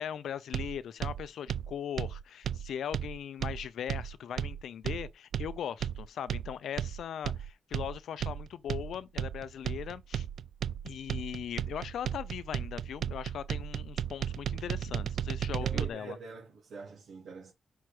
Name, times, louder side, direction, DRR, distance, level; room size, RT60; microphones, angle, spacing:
voice 1, 0.0-10.3 10.8-16.2, left 9 dB, 80° left, 0.6 m, -39 dB
sound 1, 0.5-15.9, right 9 dB, 75° right, 0.4 m, -35 dB
voice 2, 15.6-17.5, right 4 dB, 60° right, 3.0 m, -44 dB
5.8 x 4.8 x 6.0 m
wide cardioid pair, 180°, 0 cm